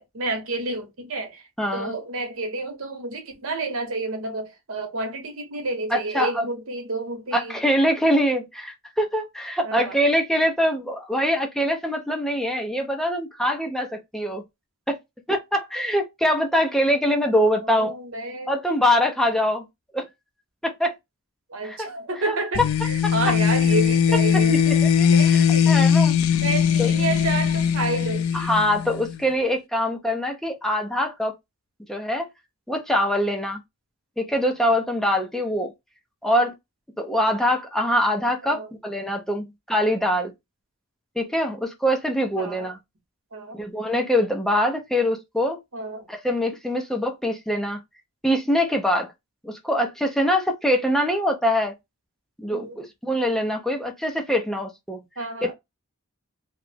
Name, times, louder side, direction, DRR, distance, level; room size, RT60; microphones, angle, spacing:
voice 1, 0.0-1.4 1.7-7.6 9.6-10.0 17.5-18.5 21.5-24.6 25.1-25.9 26.4-28.5 38.4-38.7 42.4-42.7 43.3-43.6 45.7-46.1 52.5-52.8 55.2-55.5, right 2 dB, 70° right, 1.0 m, -30 dB
voice 2, 1.6-1.9 5.9-6.4 7.3-14.4 14.9-15.0 15.3-17.9 18.5-19.7 19.9-20.0 20.6-20.9 21.6-21.8 22.3-22.4 23.0-23.1 24.3-26.1 26.8-26.9 28.3-31.3 31.9-32.3 32.7-33.6 34.2-35.7 36.2-36.5 37.0-40.3 41.2-42.8 43.5-45.6 46.1-47.8 48.2-49.1 49.4-51.7 52.4-55.0 55.4-55.5, equal, ahead, 0.5 m, -23 dB
sound 1, 22.5-29.2, left 7 dB, 70° left, 0.4 m, -20 dB
3.0 x 2.3 x 3.3 m
head